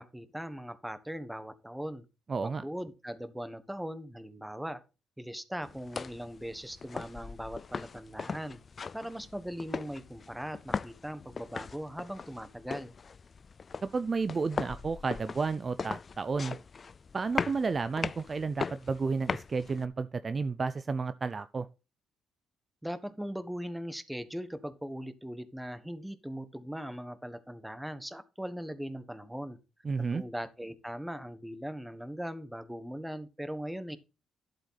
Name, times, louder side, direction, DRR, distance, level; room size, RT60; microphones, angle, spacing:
voice 1, 0.0-2.0 2.4-4.8 5.2-8.6 8.9-12.9 22.8-29.6 30.0-34.0, equal, 5° right, 1.2 m, -40 dB
voice 2, 2.3-2.6 13.9-16.6 17.1-21.7 29.8-30.2, right 4 dB, 35° right, 0.6 m, -32 dB
sound 1, 5.6-19.8, left 5 dB, 40° left, 0.4 m, -39 dB
11.0 x 7.9 x 4.1 m
cardioid pair, 90°, 0 cm